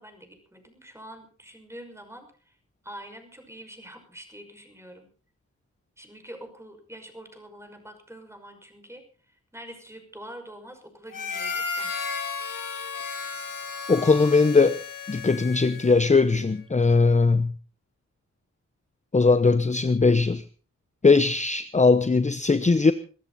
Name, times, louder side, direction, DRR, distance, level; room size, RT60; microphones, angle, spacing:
voice 1, 0.0-2.6 2.8-5.1 6.0-12.1, right 1 dB, 10° right, 5.9 m, -45 dB
Harmonica, 11.1-16.1, left 5 dB, 85° left, 3.7 m, -34 dB
voice 2, 13.9-14.8 15.1-17.5 19.1-20.4 21.0-22.9, left 4 dB, 25° left, 0.8 m, -20 dB
23.0 x 13.5 x 4.2 m
cardioid pair, 70°, 32 cm